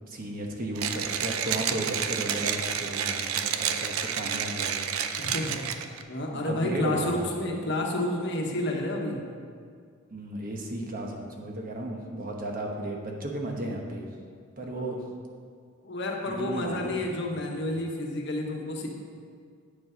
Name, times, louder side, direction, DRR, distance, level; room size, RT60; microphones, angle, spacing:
voice 1, 0.1-5.0 6.3-7.1 10.1-14.0 14.6-15.0 16.3-17.3, right 1 dB, 40° right, 0 dB, 1.1 m, -34 dB
Mechanisms, 0.8-6.0, right 8 dB, 80° right, 0.5 m, -30 dB
voice 2, 5.2-5.6 6.1-9.2 14.6-15.0 15.8-18.9, left 1 dB, 55° left, 1 dB, 1.1 m, -30 dB
9.4 x 6.8 x 5.0 m, 2.1 s
head